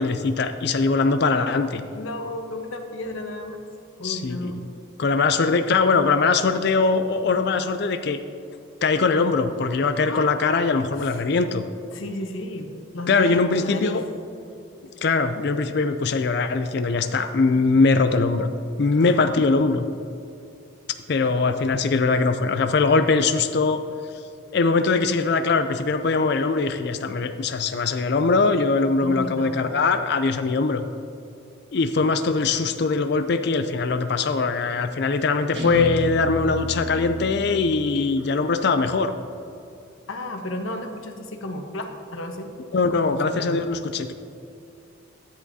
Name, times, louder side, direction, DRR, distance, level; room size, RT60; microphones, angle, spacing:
voice 1, 0.0-1.8 4.0-4.5 5.0-8.2 8.8-11.6 13.1-14.0 15.0-18.5 18.8-19.8 21.1-23.8 24.5-30.8 31.7-39.1 42.7-44.1, left 4 dB, 55° left, 8 dB, 0.4 m, -21 dB
voice 2, 1.9-3.6 4.0-4.6 10.1-10.4 11.0-11.2 11.9-14.0 19.0-19.2 29.0-29.8 40.1-42.5 42.9-43.6, left 1 dB, 90° left, 4 dB, 1.1 m, -33 dB
Guitar, 35.5-38.8, left 1 dB, 60° right, 1.5 m, -32 dB
13.5 x 10.5 x 2.8 m, 2.7 s
head